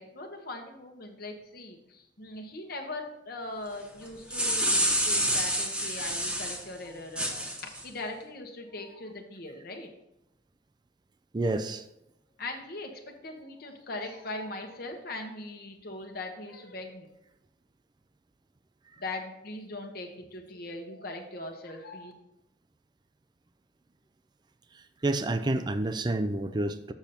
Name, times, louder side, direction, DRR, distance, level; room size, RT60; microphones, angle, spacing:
voice 1, 0.0-9.9 12.4-17.1 19.0-22.1, left 2 dB, 55° left, 3 dB, 1.2 m, -40 dB
sound 1, 4.0-6.6 7.1-7.8, right 1 dB, 5° right, 1.0 m, -28 dB
voice 2, 11.3-11.9 24.7-26.9, right 2 dB, 25° right, 10 dB, 0.4 m, -29 dB
7.1 x 6.7 x 4.3 m, 0.85 s
head